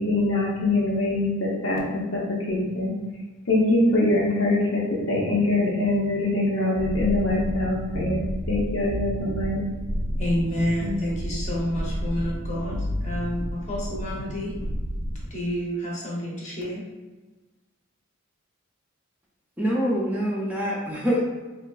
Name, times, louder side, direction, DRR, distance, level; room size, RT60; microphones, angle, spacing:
voice 1, 0.0-2.9 3.5-9.6, left 2 dB, 70° left, -3 dB, 0.7 m, -23 dB
sound 1, 6.8-15.3, equal, 85° right, 0.5 m, -31 dB
voice 2, 10.2-14.5 15.3-16.8, equal, 35° left, -4 dB, 0.8 m, -29 dB
voice 3, 19.6-21.2, equal, 10° right, -4 dB, 0.4 m, -25 dB
3.7 x 2.3 x 2.3 m, 1.2 s
head